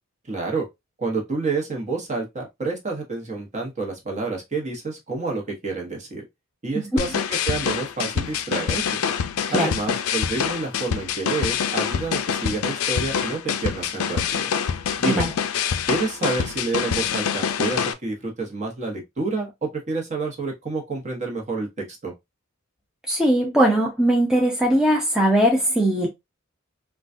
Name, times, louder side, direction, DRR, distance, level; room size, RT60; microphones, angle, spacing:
voice 1, 0.3-0.7 1.0-6.2 6.6-9.0 9.5-14.5 15.0-15.2 15.8-22.1, right 3 dB, 35° right, 1.0 m, -29 dB
sound 1, 7.0-17.9, left 7 dB, 75° left, 0.4 m, -25 dB
voice 2, 23.1-26.1, right 1 dB, 5° right, 0.5 m, -20 dB
3.8 x 2.3 x 2.5 m
head